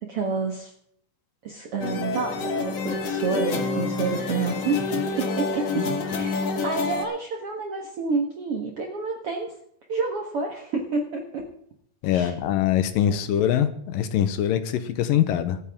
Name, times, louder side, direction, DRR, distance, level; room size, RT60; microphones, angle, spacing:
voice 1, 0.1-0.7 1.4-5.9 6.1-9.5 9.9-11.5 12.1-12.3 13.1-13.2, right 4 dB, 75° right, 1 dB, 1.3 m, -29 dB
sound 1, 1.8-7.0, left 3 dB, 55° left, 1.9 m, -27 dB
voice 2, 12.0-15.6, left 10 dB, 80° left, 10 dB, 2.0 m, -23 dB
24.5 x 9.2 x 3.6 m, 0.68 s
omnidirectional pair, 5.1 m